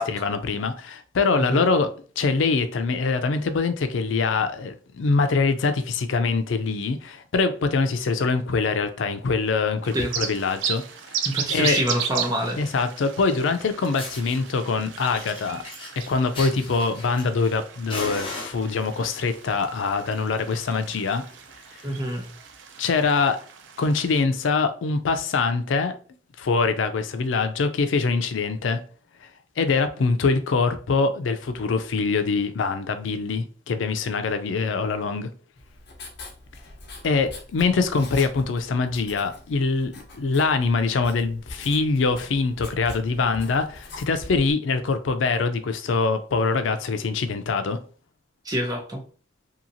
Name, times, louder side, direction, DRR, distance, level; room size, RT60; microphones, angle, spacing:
voice 1, 0.0-10.8 11.1-11.2 11.5-11.8 12.6-15.6 16.1-21.2 22.8-23.4 23.8-26.0 26.4-28.8 29.2-29.3 29.6-35.3 37.0-47.8, left 4 dB, 90° left, 0.4 m, -24 dB
sound 1, 9.9-24.2, right 8 dB, 80° right, 0.4 m, -35 dB
voice 2, 11.3-12.6 21.8-22.3 48.4-49.0, equal, 20° right, 0.7 m, -26 dB
Fire, 13.5-13.6 13.9-14.4 14.9-17.6 17.9-19.1 19.9-20.1 20.5-20.6 20.9-21.0 21.3-21.5 22.1-22.2 23.1-23.2, left 2 dB, 30° left, 0.8 m, -37 dB
Writing, 35.6-44.5, left 2 dB, 60° left, 0.9 m, -43 dB
2.8 x 2.8 x 2.6 m
head